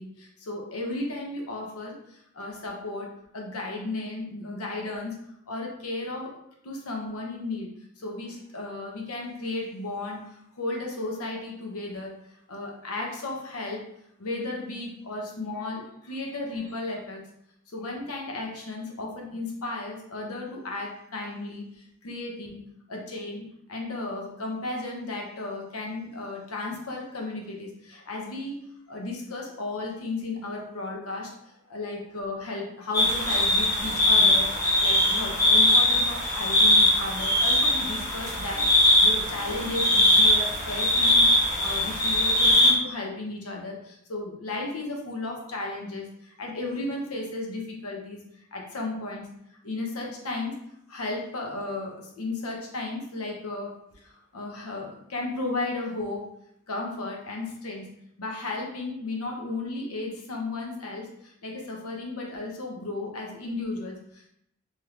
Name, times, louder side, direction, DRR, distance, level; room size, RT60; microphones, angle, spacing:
voice 1, 0.0-5.2 5.5-6.4 6.6-12.1 12.5-13.9 14.2-17.2 17.7-22.6 22.9-48.2 48.5-49.3 49.6-50.6 50.9-56.3 56.7-57.9 58.2-64.3, left 2 dB, 70° left, -1 dB, 0.7 m, -34 dB
sound 1, 32.9-42.7, left 1 dB, 15° left, 1.4 m, -21 dB
3.3 x 2.9 x 2.4 m, 0.74 s
head